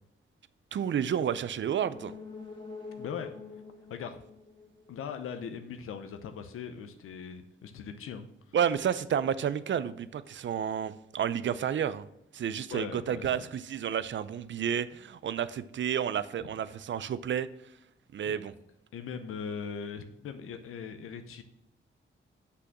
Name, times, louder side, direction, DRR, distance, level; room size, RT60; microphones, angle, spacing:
voice 1, 0.7-2.1 8.5-12.0 12.3-17.5 18.1-18.5, right 8 dB, 60° right, 16 dB, 0.5 m, -31 dB
sound 1, 1.7-5.4 5.8-5.9, left 4 dB, 20° left, 2.1 m, -46 dB
voice 2, 3.0-3.3 3.9-4.2 4.9-8.6 12.7-13.5 16.4-16.5 18.2-18.4 18.9-21.4, left 6 dB, 85° left, 8 dB, 0.7 m, -40 dB
6.2 x 5.7 x 5.9 m, 0.80 s
cardioid pair, 60°, 21 cm